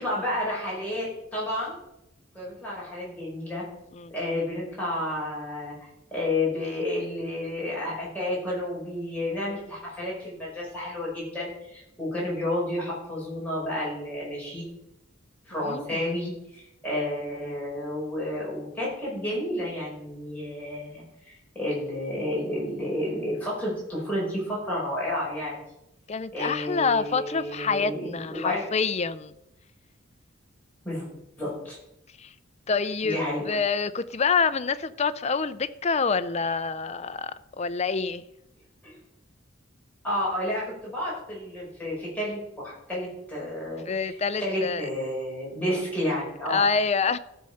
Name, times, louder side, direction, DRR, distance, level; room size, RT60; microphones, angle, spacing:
voice 1, 0.0-1.8 2.3-3.7 4.1-14.7 15.5-25.6 26.3-28.7 30.8-31.0 31.4-31.8 33.0-33.6 38.8-39.0 40.0-46.6, left 1 dB, 5° left, 5.4 m, -31 dB
voice 2, 15.5-16.1 26.1-29.3 32.2-32.3 32.7-33.2 33.5-38.2 43.9-44.9 46.5-47.2, left 5 dB, 30° left, 0.5 m, -27 dB
14.5 x 6.5 x 5.7 m
head